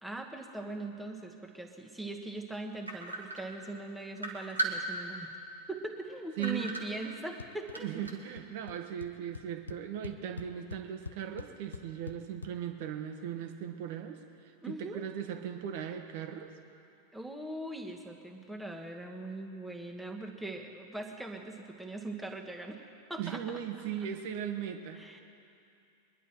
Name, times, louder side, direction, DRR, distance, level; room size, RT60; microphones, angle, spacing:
voice 1, 0.0-5.3 5.7-7.9 14.6-15.0 17.1-22.8 23.1-23.4 24.9-25.2, right 2 dB, 5° right, 2 dB, 1.5 m, -41 dB
sound 1, 2.9-3.8 4.2-5.3 5.7-5.8 6.4-7.4 7.7-8.3, right 3 dB, 85° right, 1.7 m, -36 dB
voice 2, 6.4-6.7 7.8-16.5 23.2-25.2, right 9 dB, 50° right, 5 dB, 1.3 m, -38 dB
sound 2, 7.4-7.8 8.0-8.4 8.7-8.8 9.0-12.5, left 5 dB, 75° left, 0.4 m, -44 dB
23.0 x 11.0 x 4.5 m, 2.6 s
figure-of-eight pair, 90°, 0 cm